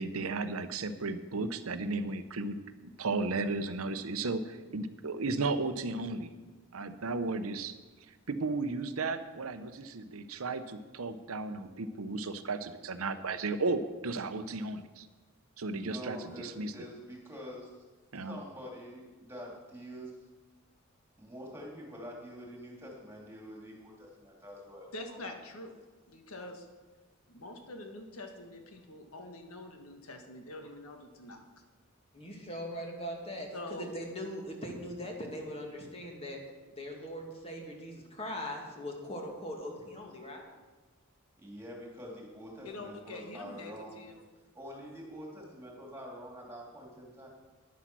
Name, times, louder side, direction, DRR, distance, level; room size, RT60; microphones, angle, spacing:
voice 1, 0.0-2.6 2.8-6.3 6.7-7.8 8.3-15.1 15.6-16.7 18.1-18.4, right 3 dB, 80° right, 10 dB, 0.8 m, -34 dB
voice 2, 15.8-17.8 18.2-20.1 21.2-24.9 41.4-44.0 44.5-47.3, equal, 10° right, -1 dB, 2.9 m, -46 dB
voice 3, 24.9-25.8 26.1-26.7 27.3-31.4 33.5-33.9 42.6-44.2, left 2 dB, 85° left, 4 dB, 1.7 m, -45 dB
voice 4, 32.1-36.4 36.7-40.5, equal, 30° left, 1 dB, 2.1 m, -40 dB
10.5 x 10.0 x 6.1 m, 1.3 s
head